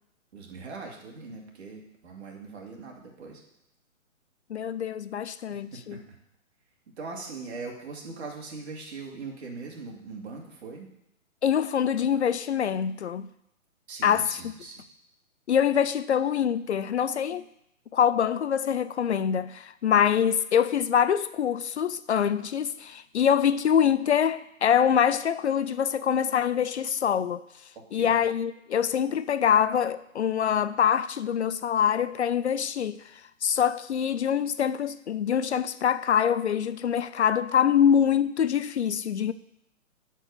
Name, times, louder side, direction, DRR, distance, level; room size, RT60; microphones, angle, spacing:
voice 1, 0.3-3.4 5.5-6.2 7.0-10.9 13.9-14.8 27.9-28.2, right 4 dB, 50° right, 2.5 m, -41 dB
voice 2, 4.5-6.0 11.4-13.3 14.0-14.3 15.5-17.4 17.9-27.4 27.9-33.0 33.4-39.3, left 8 dB, 55° left, 0.5 m, -24 dB
10.0 x 4.6 x 6.8 m
figure-of-eight pair, 135°, 41 cm